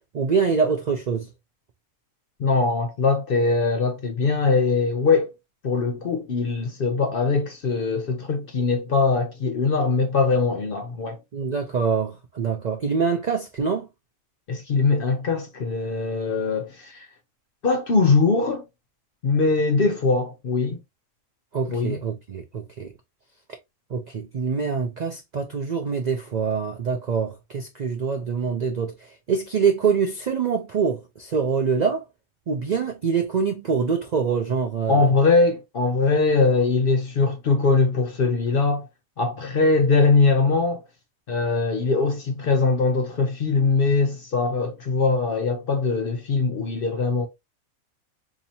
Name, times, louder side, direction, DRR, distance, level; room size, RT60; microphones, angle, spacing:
voice 1, 0.1-1.3 11.3-13.9 21.5-22.9 23.9-32.0 32.5-35.1, right 6 dB, 85° right, 0.3 m, -25 dB
voice 2, 2.4-5.3 5.6-11.2 14.5-17.1 17.6-18.6 19.2-20.8 21.7-22.0 34.9-38.9 39.2-40.8 41.3-47.3, left 4 dB, 60° left, 0.6 m, -21 dB
4.1 x 2.8 x 2.7 m
omnidirectional pair, 1.4 m